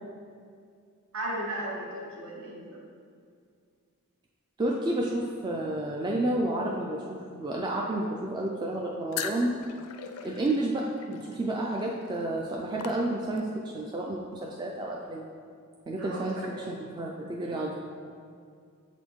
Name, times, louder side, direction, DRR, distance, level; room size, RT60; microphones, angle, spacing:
voice 1, 1.1-2.8 16.0-16.7, right 1 dB, 65° right, -3 dB, 1.2 m, -36 dB
voice 2, 4.6-9.7 10.2-15.3 15.9-17.8, right 1 dB, 20° right, -1 dB, 0.3 m, -31 dB
sound 1, 9.1-13.6, left 7 dB, 75° left, 0.4 m, -41 dB
7.7 x 4.2 x 3.1 m, 2.2 s
head